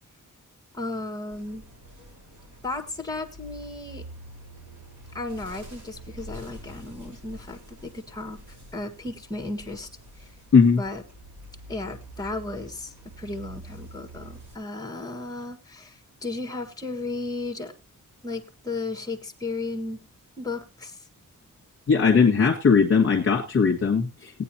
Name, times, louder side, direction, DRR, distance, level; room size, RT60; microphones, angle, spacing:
voice 1, 0.7-1.6 2.6-4.0 5.1-8.4 8.7-9.9 10.2-10.3 10.8-11.0 11.7-17.7 18.2-20.0 20.4-21.0, left 2 dB, 10° left, 5 dB, 1.6 m, -34 dB
sound 1, 1.3-14.6, right 1 dB, 65° right, 4.4 m, -46 dB
voice 2, 21.9-24.4, left 5 dB, 45° left, -1 dB, 1.8 m, -19 dB
18.0 x 9.4 x 2.9 m, 0.28 s
wide cardioid pair, 175°, 32 cm